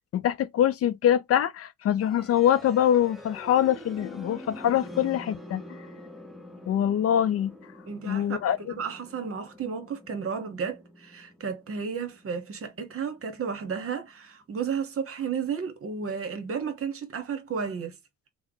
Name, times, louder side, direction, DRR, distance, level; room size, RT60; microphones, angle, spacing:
voice 1, 0.1-5.6 6.7-7.5 8.1-8.6, left 10 dB, 50° left, 0.4 m, -24 dB
sound 1, 2.0-13.9, left 1 dB, ahead, 0.7 m, -46 dB
voice 2, 7.9-8.4 8.7-17.9, right 6 dB, 50° right, 1.0 m, -33 dB
3.2 x 2.1 x 3.7 m
cardioid pair, 90°, 30 cm